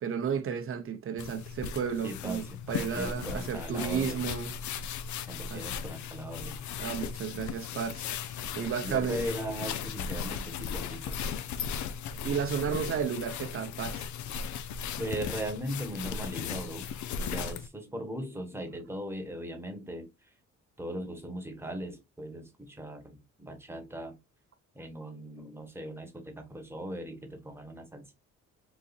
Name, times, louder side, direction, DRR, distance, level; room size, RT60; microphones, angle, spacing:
voice 1, 0.0-4.5 5.5-5.6 6.8-8.1 8.5-9.3 12.2-14.1, right 7 dB, 45° right, 0.7 m, -33 dB
sound 1, 1.2-17.7, left 7 dB, 70° left, 0.5 m, -37 dB
voice 2, 2.0-4.2 5.3-6.7 8.8-11.2 15.0-16.9 17.2-20.1 20.8-24.2 24.7-28.1, right 1 dB, 10° right, 1.1 m, -39 dB
4.0 x 2.6 x 2.4 m
cardioid pair, 90°, 30 cm